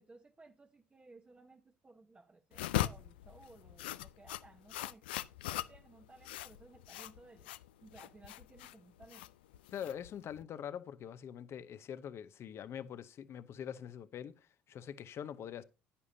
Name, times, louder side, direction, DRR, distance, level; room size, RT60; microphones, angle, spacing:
voice 1, 0.0-5.1 5.5-7.5 7.8-9.3, right 3 dB, 25° right, 1.0 m, -59 dB
sound 1, 2.5-10.4, left 14 dB, 85° left, 0.4 m, -40 dB
voice 2, 9.7-15.6, left 9 dB, 55° left, 0.8 m, -44 dB
9.8 x 9.8 x 2.7 m
hypercardioid pair, 60°, 5 cm